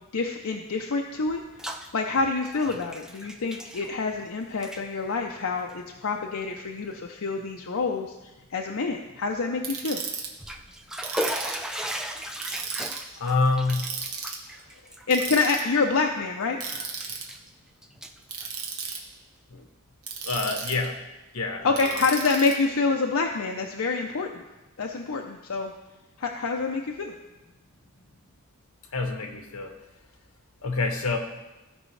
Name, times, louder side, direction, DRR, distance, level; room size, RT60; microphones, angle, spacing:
voice 1, 0.1-1.4 1.9-8.1 8.5-10.0 15.1-16.9 21.6-24.4 24.8-25.7 26.2-27.1, left 4 dB, 70° left, 2 dB, 0.6 m, -27 dB
Bathtub (filling or washing), 1.3-1.9 2.2-4.3 4.5-4.8 5.6-5.7 6.4-6.5 6.9-7.0 10.2-16.3 16.7-17.5 17.8-19.1, equal, 5° right, 0.4 m, -36 dB
Ratchet pawl, 9.6-10.3 11.0-11.7 12.4-13.0 13.7-14.4 15.1-15.6 16.6-17.2 18.3-19.0 20.0-20.9 21.8-22.5, right 6 dB, 90° right, 1.4 m, -34 dB
voice 2, 13.2-13.9 19.5-19.7 20.2-21.0 21.3-22.0 28.9-29.7 30.6-31.2, left 3 dB, 85° left, 5 dB, 1.1 m, -27 dB
15.5 x 5.4 x 3.2 m, 1.1 s
head